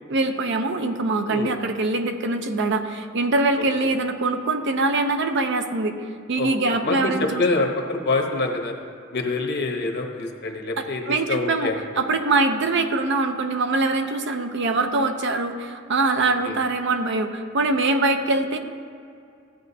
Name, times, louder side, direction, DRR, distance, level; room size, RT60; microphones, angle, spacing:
voice 1, 0.1-6.0 6.3-7.4 10.8-18.6, right 3 dB, 60° right, 6 dB, 0.7 m, -23 dB
voice 2, 6.4-7.1 7.4-8.7 9.1-11.0 11.3-12.0 16.2-16.6, left 3 dB, 55° left, 3 dB, 1.0 m, -26 dB
14.5 x 9.0 x 2.7 m, 2.4 s
head